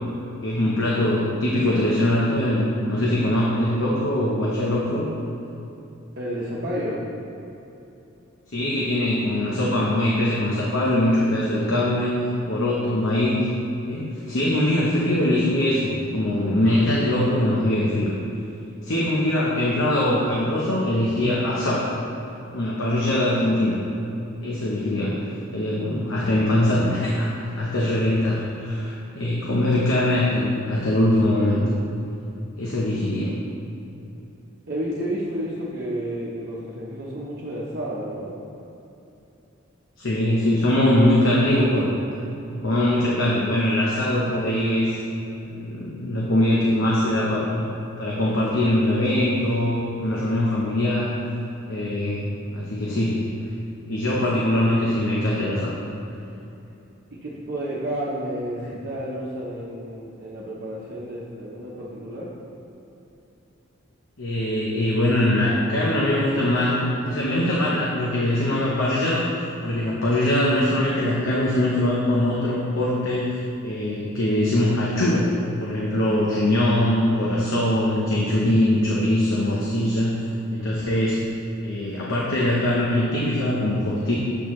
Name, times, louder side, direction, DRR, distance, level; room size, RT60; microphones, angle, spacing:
voice 1, 0.4-5.1 8.5-13.4 13.9-18.1 18.8-21.9 22.5-23.8 24.4-25.2 25.5-31.6 32.6-33.3 40.0-41.9 42.5-45.0 45.5-47.6 48.0-51.2 51.7-52.2 52.5-53.2 53.9-55.7 64.2-69.3 69.6-75.3 75.6-80.2 80.5-81.2 81.6-84.2, left 1 dB, 70° left, -5 dB, 0.9 m, -22 dB
voice 2, 6.2-7.0 34.7-38.3 57.1-62.3, right 1 dB, 50° right, -7 dB, 0.9 m, -31 dB
8.0 x 6.0 x 3.1 m, 2.9 s
head